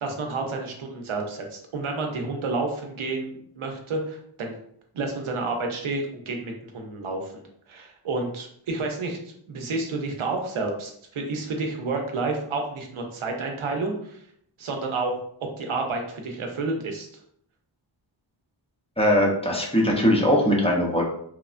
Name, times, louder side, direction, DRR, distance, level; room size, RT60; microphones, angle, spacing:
voice 1, 0.0-4.6 4.9-14.2 14.6-17.1, right 3 dB, 90° right, 3 dB, 0.6 m, -30 dB
voice 2, 19.0-21.0, equal, 15° left, -3 dB, 0.6 m, -20 dB
3.1 x 2.1 x 2.4 m, 0.68 s
wide cardioid pair, 75°, 48 cm